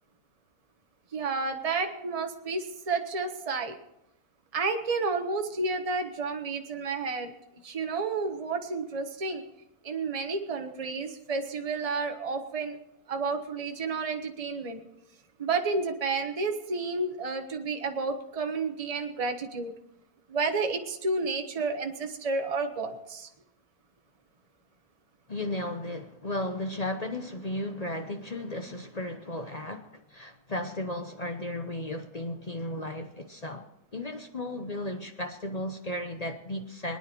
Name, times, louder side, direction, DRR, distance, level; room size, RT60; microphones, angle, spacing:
voice 1, 1.1-3.8 4.5-7.3 7.6-9.4 9.8-12.8 13.1-14.8 15.4-19.7 20.3-23.3, right 4 dB, 25° right, 1.1 m, -31 dB
voice 2, 25.3-37.0, left 1 dB, 40° left, 0.6 m, -35 dB
24.0 x 9.8 x 4.5 m
omnidirectional pair, 1.9 m